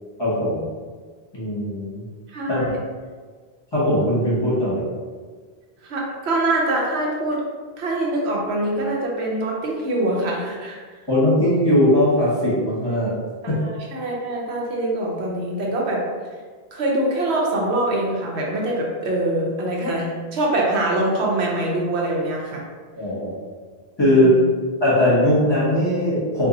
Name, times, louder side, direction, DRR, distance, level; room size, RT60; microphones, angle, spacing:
voice 1, 0.2-0.6 1.3-2.0 2.5-2.7 3.7-4.8 11.1-13.1 13.5-13.6 22.9-23.3 24.0-24.3 24.8-26.5, left 1 dB, 25° left, -9 dB, 1.3 m, -19 dB
voice 2, 2.3-2.8 5.8-7.4 7.8-10.8 13.4-16.0 16.7-22.6 24.0-24.4, right 1 dB, 80° right, -2 dB, 1.0 m, -24 dB
2.7 x 2.6 x 3.7 m, 1.5 s
omnidirectional pair, 1.1 m